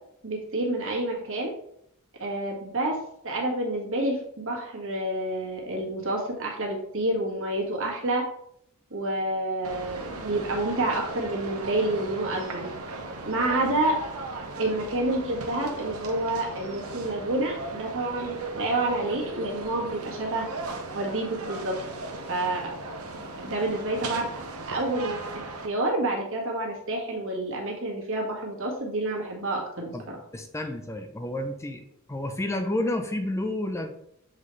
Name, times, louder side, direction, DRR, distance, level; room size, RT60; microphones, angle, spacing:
voice 1, 0.2-1.5 2.2-3.0 3.2-8.2 8.9-12.7 13.2-14.0 14.6-20.5 20.9-21.8 22.3-22.7 23.4-24.3 24.7-29.9, right 2 dB, 65° right, -1 dB, 1.7 m, -28 dB
sound 1, 9.6-25.7, right 2 dB, 80° right, 1.0 m, -37 dB
voice 2, 30.3-33.9, left 1 dB, 15° left, 5 dB, 0.5 m, -30 dB
7.4 x 4.1 x 3.2 m, 0.72 s
head